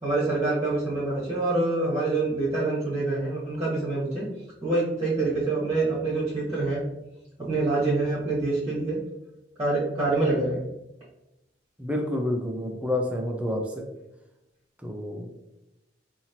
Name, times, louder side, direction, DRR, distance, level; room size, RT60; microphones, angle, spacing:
voice 1, 0.0-4.2 4.6-6.8 7.4-9.0 9.6-10.7, right 2 dB, 25° right, -7 dB, 1.2 m, -26 dB
voice 2, 11.8-13.8 14.8-15.3, left 1 dB, 5° right, 2 dB, 0.4 m, -29 dB
4.1 x 2.8 x 2.8 m, 0.91 s
head